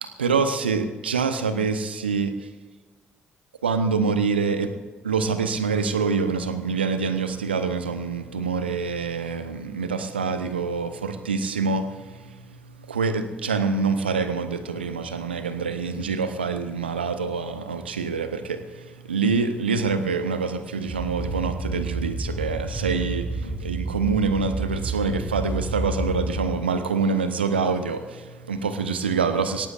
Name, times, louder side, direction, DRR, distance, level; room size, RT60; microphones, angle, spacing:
voice 1, 0.0-2.5 3.6-4.7 5.0-11.9 12.2-29.7, right 5 dB, 85° right, 10 dB, 0.9 m, -26 dB
sound 1, 20.9-26.5, right 2 dB, 30° right, 2.3 m, -30 dB
22.0 x 17.5 x 2.5 m, 1.4 s
figure-of-eight pair, 45°, 6 cm